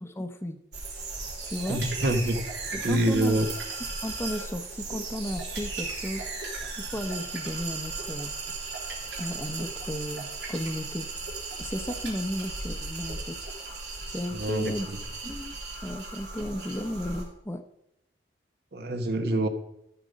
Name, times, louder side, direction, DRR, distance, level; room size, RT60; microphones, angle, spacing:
voice 1, 0.0-0.6 1.4-1.8 2.7-3.4 4.0-6.4 6.8-8.3 9.2-11.1 11.6-13.4 14.0-14.9 15.2-15.6 15.8-17.6, left 1 dB, 15° left, 9 dB, 0.7 m, -34 dB
sound 1, 0.7-17.2, right 3 dB, 85° right, 3.9 m, -36 dB
voice 2, 1.7-2.4 2.7-3.5 14.3-15.0 18.7-19.5, right 1 dB, 65° right, 8 dB, 1.0 m, -26 dB
13.0 x 6.8 x 5.1 m, 0.80 s
head